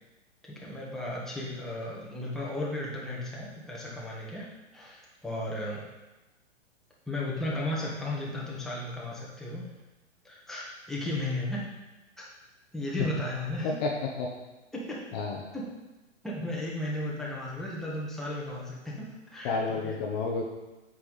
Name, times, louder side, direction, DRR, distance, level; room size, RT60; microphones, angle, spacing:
voice 1, 0.5-4.5 4.7-5.8 7.1-9.7 10.2-11.6 12.2-12.3 12.7-13.7 14.7-15.0 15.5-15.6 16.2-19.9, left 1 dB, ahead, -5 dB, 1.6 m, -35 dB
voice 2, 19.4-20.4, left 4 dB, 35° left, 0 dB, 1.1 m, -30 dB
8.3 x 6.1 x 4.1 m, 1.1 s
hypercardioid pair, 125°, 37 cm